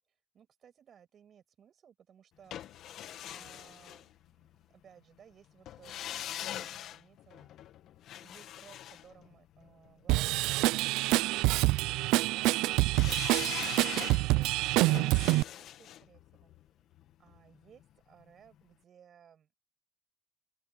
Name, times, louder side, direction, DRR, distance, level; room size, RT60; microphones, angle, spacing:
voice 1, 0.0-7.8 8.2-12.5 12.8-16.9 17.2-19.7, right 8 dB, 45° right, 6.7 m, -61 dB
sound 1, 2.5-4.6 5.7-9.9 12.9-17.9 18.2-18.3, left 11 dB, 60° left, 1.7 m, -43 dB
Drum kit / Drum, 10.1-15.4, right 20 dB, 85° right, 0.4 m, -26 dB
open air
cardioid pair, 125°, 0 cm